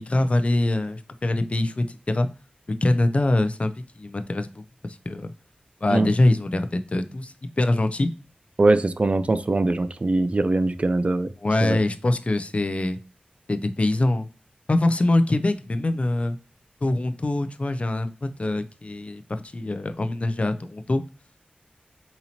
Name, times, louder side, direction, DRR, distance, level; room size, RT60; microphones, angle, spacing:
voice 1, 0.0-2.3 2.8-5.3 5.8-8.1 11.4-13.0 13.5-14.3 14.7-16.4 16.8-21.0, left 2 dB, 40° left, 10 dB, 0.4 m, -24 dB
voice 2, 8.6-11.3 11.6-11.8, right 2 dB, 40° right, 12 dB, 0.4 m, -22 dB
4.1 x 2.9 x 2.7 m, 0.35 s
cardioid pair, 45°, 3 cm